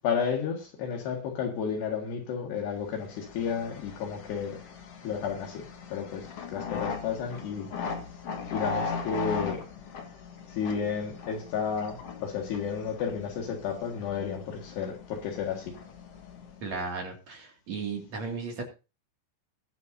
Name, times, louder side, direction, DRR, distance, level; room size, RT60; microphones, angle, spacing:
voice 1, 0.0-4.6 5.0-5.6 5.9-7.7 8.5-9.6 10.5-15.7, left 6 dB, 70° left, 3.9 m, -32 dB
sound 1, 2.9-16.8, left 5 dB, 55° left, 1.8 m, -39 dB
voice 2, 16.6-18.6, right 4 dB, 45° right, 3.2 m, -35 dB
20.5 x 8.9 x 2.7 m
omnidirectional pair, 5.0 m